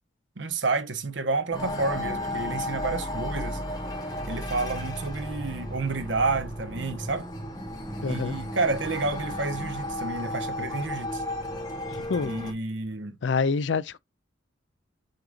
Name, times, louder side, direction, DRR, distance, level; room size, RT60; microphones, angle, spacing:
voice 1, 0.4-3.6 4.3-7.3 8.1-11.2 12.2-13.2, right 3 dB, 75° right, 1.1 m, -30 dB
sound 1, 1.5-12.5, left 1 dB, 20° left, 2.6 m, -34 dB
voice 2, 8.0-8.4 11.9-12.3 13.2-14.0, left 5 dB, 70° left, 0.5 m, -27 dB
7.8 x 5.0 x 2.5 m
head